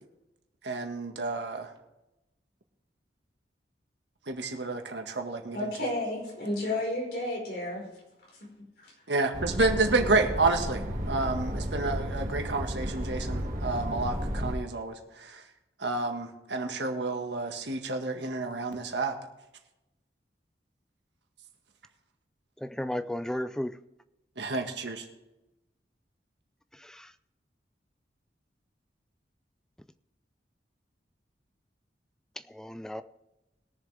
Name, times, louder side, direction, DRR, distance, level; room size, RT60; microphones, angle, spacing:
voice 1, 0.6-1.7 4.3-5.7 9.1-15.4 15.8-19.2 24.4-25.0, right 3 dB, 90° right, 4 dB, 1.7 m, -30 dB
voice 2, 5.5-7.8 8.4-8.5, left 1 dB, 60° left, -2 dB, 4.8 m, -31 dB
sound 1, 9.3-14.5, equal, 45° right, 2.0 m, -33 dB
voice 3, 22.6-23.8 26.7-27.1 32.5-33.0, left 1 dB, 5° left, 11 dB, 0.4 m, -34 dB
21.5 x 7.2 x 3.4 m, 0.96 s
head